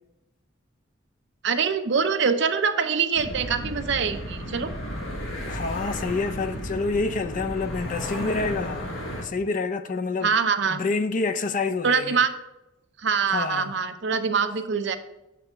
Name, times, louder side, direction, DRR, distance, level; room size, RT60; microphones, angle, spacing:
voice 1, 1.4-4.7 10.2-10.8 11.8-12.3 13.0-15.0, right 6 dB, 60° right, 0.6 m, -24 dB
sound 1, 3.1-9.2, equal, 80° left, 1.3 m, -33 dB
voice 2, 5.5-8.9 9.2-10.3 10.7-12.2 13.3-13.7, left 3 dB, 40° left, 0.4 m, -27 dB
7.5 x 3.4 x 5.5 m
head